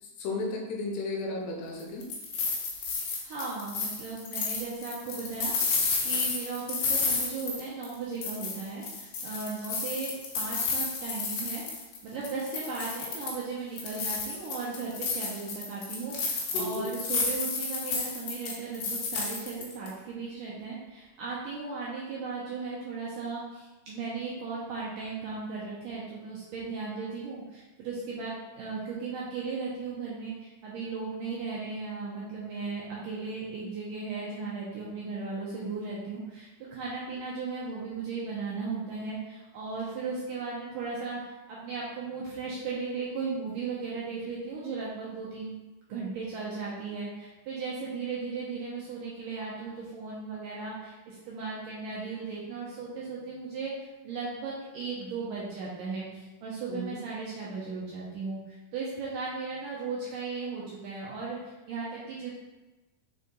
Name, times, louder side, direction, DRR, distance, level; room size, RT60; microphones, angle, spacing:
voice 1, 0.2-2.1 16.5-16.9 56.7-56.9, left 2 dB, 85° left, 0 dB, 3.0 m, -33 dB
sound 1, 1.8-7.9 8.2-12.0 12.2-13.4 13.8-19.9, left 4 dB, 70° left, 2.6 m, -31 dB
voice 2, 3.2-11.6 12.0-45.5 45.9-53.7 54.0-62.3, right 4 dB, 75° right, -6 dB, 2.0 m, -36 dB
6.2 x 4.1 x 3.8 m, 1.1 s
omnidirectional pair, 4.8 m